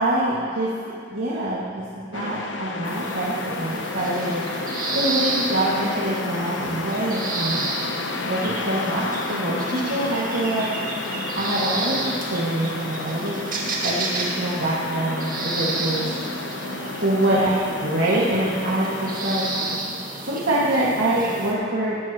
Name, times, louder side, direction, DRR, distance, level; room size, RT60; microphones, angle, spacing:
voice 1, 0.0-4.4 4.9-7.6 8.3-10.7 11.4-13.4 13.8-16.1 17.0-19.5 20.2-22.0, right 1 dB, 75° right, -7 dB, 1.9 m, -25 dB
sound 1, 2.1-19.8, left 3 dB, 75° left, 0.8 m, -32 dB
sound 2, 2.8-21.5, right 3 dB, 45° right, 1.9 m, -31 dB
19.5 x 12.5 x 3.0 m, 2.3 s
head